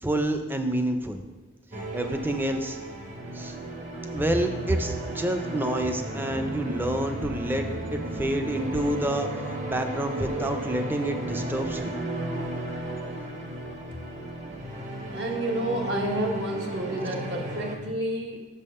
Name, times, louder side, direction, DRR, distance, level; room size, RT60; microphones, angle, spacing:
voice 1, 0.0-1.2 1.9-2.8 3.3-3.6 4.1-11.9, right 1 dB, 10° right, 6 dB, 0.5 m, -28 dB
sound 1, 1.7-17.8, right 1 dB, 40° right, 1.0 m, -34 dB
voice 2, 15.1-18.5, right 1 dB, 60° right, 1 dB, 1.2 m, -30 dB
7.0 x 5.5 x 5.4 m, 1.3 s
head